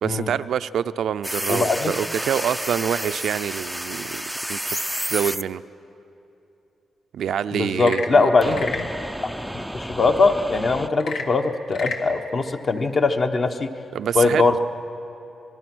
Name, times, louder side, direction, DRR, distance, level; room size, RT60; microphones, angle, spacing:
voice 1, 0.0-4.2 4.5-4.8 5.1-5.6 7.1-8.6 13.9-14.6, right 9 dB, 75° right, 12 dB, 0.4 m, -26 dB
sound 1, 1.2-5.4 8.4-10.9, equal, ahead, 0.4 m, -30 dB
voice 2, 1.5-1.9 7.5-8.9 9.2-9.3 9.7-13.7 14.1-14.6, left 3 dB, 40° left, 6 dB, 1.2 m, -21 dB
Frog / Percussion / Wood, 7.7-9.0 10.9-12.1, left 4 dB, 75° left, 1.8 m, -31 dB
26.0 x 20.0 x 6.2 m, 2.9 s
cardioid pair, 110°, 0 cm